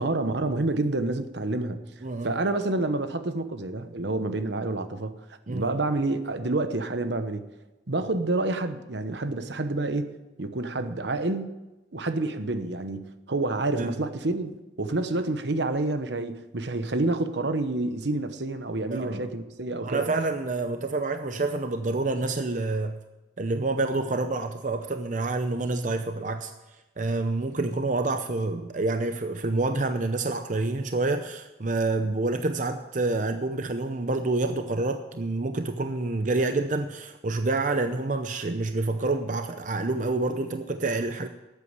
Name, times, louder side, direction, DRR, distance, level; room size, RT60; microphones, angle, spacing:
voice 1, 0.0-7.4 7.9-10.1 10.4-11.6 11.9-20.1, right 2 dB, 70° right, 1.0 m, -28 dB
voice 2, 2.0-2.3 5.5-5.6 13.8-13.9 18.9-19.3 19.8-23.0 23.4-26.5 27.0-41.3, right 2 dB, 45° right, 0.7 m, -28 dB
12.5 x 8.4 x 8.1 m
head